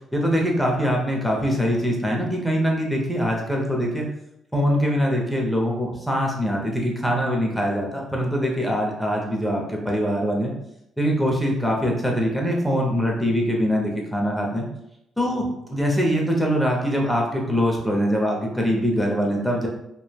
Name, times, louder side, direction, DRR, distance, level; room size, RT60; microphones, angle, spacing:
voice 1, 0.1-4.1 4.5-10.5 11.0-14.7 15.2-19.7, equal, ahead, -1 dB, 0.7 m, -23 dB
3.0 x 2.1 x 2.3 m, 0.81 s
cardioid pair, 90°, 0 cm